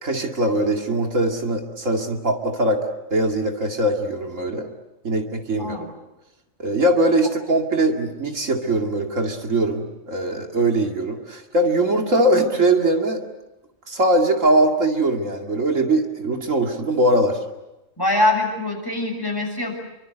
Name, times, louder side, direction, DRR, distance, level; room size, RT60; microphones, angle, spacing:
voice 1, 0.0-2.8 3.1-4.7 5.0-5.8 6.6-13.2 13.9-17.4, right 1 dB, 75° right, 3 dB, 2.7 m, -21 dB
voice 2, 18.0-19.7, left 2 dB, 15° left, 1 dB, 6.7 m, -23 dB
29.0 x 24.5 x 8.0 m, 0.97 s
omnidirectional pair, 1.3 m